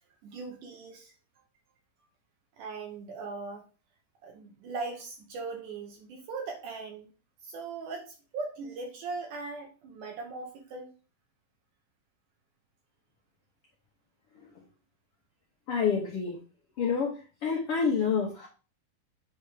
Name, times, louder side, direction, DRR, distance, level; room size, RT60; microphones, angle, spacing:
voice 1, 0.2-1.1 2.6-3.6 4.2-7.1 7.4-10.9, right 4 dB, 65° right, 2 dB, 2.3 m, -39 dB
voice 2, 15.7-16.4 16.8-17.1 17.4-18.5, left 6 dB, 75° left, -3 dB, 1.3 m, -27 dB
8.0 x 3.4 x 4.9 m, 0.35 s
omnidirectional pair, 4.3 m